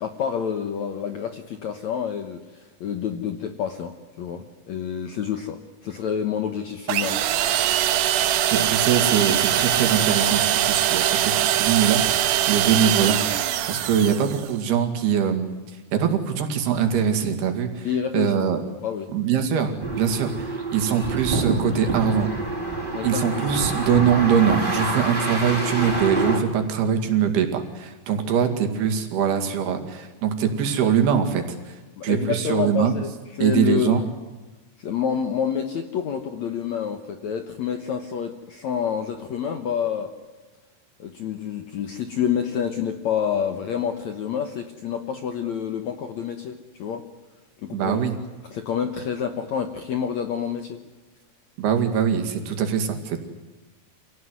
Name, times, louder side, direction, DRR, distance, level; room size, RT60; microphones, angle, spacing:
voice 1, 0.0-7.2 17.8-18.3 18.8-19.1 22.9-23.2 32.0-34.0 34.8-40.1 41.0-47.0 47.6-48.0 48.5-50.8, left 8 dB, 65° left, 7 dB, 1.8 m, -28 dB
sound 1, 6.9-14.5, right 11 dB, 90° right, 3.3 m, -22 dB
voice 2, 8.5-13.4 13.7-15.5 15.9-17.9 18.1-18.6 19.1-22.3 23.0-31.8 32.0-32.9 33.4-34.0 47.7-48.1 51.6-53.2, right 7 dB, 70° right, 5 dB, 4.2 m, -22 dB
sound 2, 19.8-26.4, right 2 dB, 10° right, 4.5 m, -27 dB
27.0 x 17.5 x 9.6 m, 1.2 s
omnidirectional pair, 4.8 m